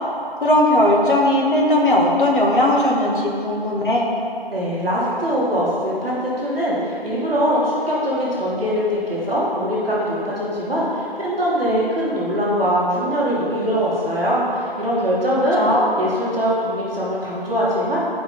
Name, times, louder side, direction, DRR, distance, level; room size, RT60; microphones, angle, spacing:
voice 1, 0.4-4.1 15.5-15.9, left 1 dB, 55° left, -2 dB, 1.6 m, -17 dB
voice 2, 4.5-15.7 16.0-18.0, equal, ahead, -24 dB, 1.0 m, -22 dB
9.9 x 5.1 x 5.1 m, 2.5 s
figure-of-eight pair, 170°, 30 cm